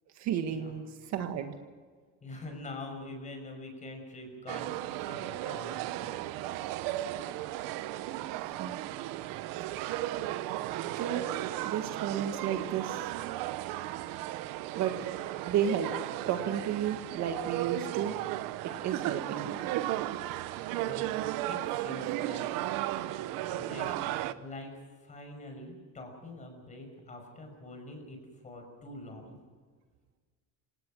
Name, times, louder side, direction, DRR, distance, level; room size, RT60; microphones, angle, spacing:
voice 1, 0.2-1.6 8.6-8.8 10.6-11.3 11.6-13.1 14.8-15.0 15.5-15.9 16.3-18.1 18.6-19.7, right 9 dB, 50° right, 6 dB, 1.8 m, -33 dB
voice 2, 2.2-6.1 14.8-15.1 20.7-21.1 21.4-22.5 23.6-29.3, left 2 dB, 20° left, 4 dB, 5.8 m, -45 dB
sound 1, 4.5-24.3, right 14 dB, 65° right, 1.1 m, -35 dB
27.5 x 18.0 x 6.3 m, 1.5 s
cardioid pair, 170°, 36 cm